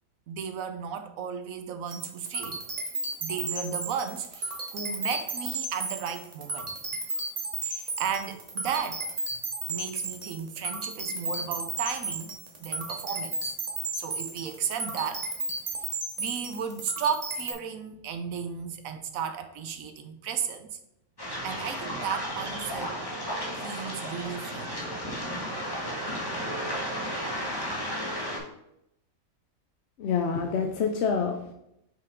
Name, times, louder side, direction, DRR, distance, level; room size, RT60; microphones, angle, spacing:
voice 1, 0.3-2.6 3.2-6.7 7.6-9.1 9.7-12.3 12.6-13.5 13.9-15.3 16.2-20.8 21.4-23.0 23.6-24.8, right 7 dB, 75° right, 9 dB, 1.1 m, -34 dB
sound 1, 1.9-17.5, right 2 dB, 30° right, 1.0 m, -34 dB
Waves surf, 21.2-28.4, equal, 15° left, 1.5 m, -33 dB
voice 2, 30.0-31.5, left 6 dB, 60° left, 4 dB, 0.7 m, -27 dB
5.8 x 5.1 x 3.7 m, 0.80 s
omnidirectional pair, 1.5 m